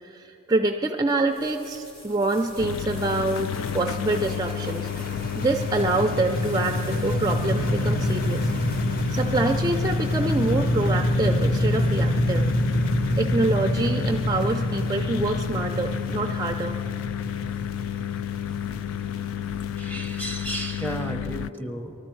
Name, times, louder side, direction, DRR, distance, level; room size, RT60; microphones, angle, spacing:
voice 1, 0.0-8.5 9.1-12.5 13.2-16.8, right 2 dB, 20° right, 4 dB, 0.4 m, -26 dB
sound 1, 1.3-9.7, equal, 25° left, 2.4 m, -50 dB
sound 2, 2.2-21.0, equal, 45° left, 0.8 m, -27 dB
sound 3, 2.6-21.5, left 10 dB, 75° left, 0.3 m, -31 dB
voice 2, 19.8-21.9, right 1 dB, 10° left, 5 dB, 0.7 m, -33 dB
20.5 x 13.0 x 4.5 m, 3.0 s
head